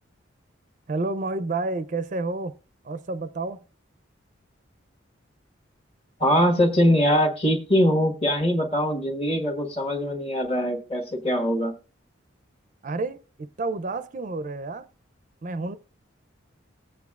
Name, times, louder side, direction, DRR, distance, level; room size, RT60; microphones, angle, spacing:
voice 1, 0.9-2.5 2.8-3.6 12.8-13.2 13.6-14.9 15.4-15.8, right 3 dB, 40° right, 0.4 m, -29 dB
voice 2, 6.2-11.7, equal, 30° left, 1.4 m, -22 dB
19.0 x 8.1 x 2.3 m
head